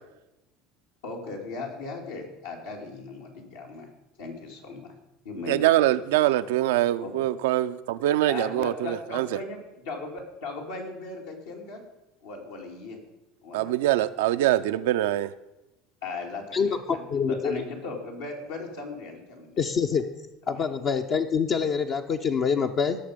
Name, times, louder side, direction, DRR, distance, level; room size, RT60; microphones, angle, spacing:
voice 1, 1.0-3.9 4.2-4.9 5.2-5.9 7.0-7.1 8.3-11.8 12.2-13.0 13.4-13.8 16.0-19.6 20.5-20.7, left 3 dB, 80° left, 2.8 m, -37 dB
voice 2, 5.5-9.4 13.5-15.3, right 14 dB, 75° right, 0.5 m, -24 dB
voice 3, 16.5-17.6 19.6-20.0 20.5-23.0, left 6 dB, 45° left, 0.8 m, -26 dB
17.5 x 6.7 x 5.1 m
hypercardioid pair, 80°, 0 cm